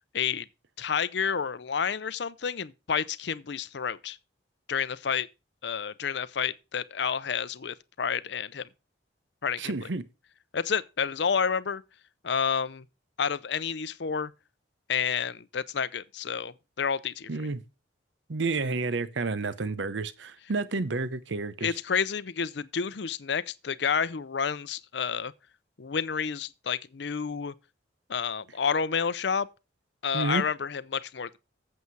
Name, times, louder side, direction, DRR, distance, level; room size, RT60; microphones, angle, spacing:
voice 1, 0.1-0.5 0.8-4.2 4.7-5.3 5.6-8.7 9.4-9.7 10.5-11.8 12.2-12.8 13.2-14.3 14.9-17.3 21.6-25.3 25.8-27.5 28.1-29.5 30.0-31.4, left 6 dB, 60° left, 0.6 m, -30 dB
voice 2, 9.6-10.0 17.3-17.6 18.3-21.7 30.1-30.4, right 3 dB, 70° right, 0.7 m, -30 dB
8.2 x 7.7 x 4.6 m
head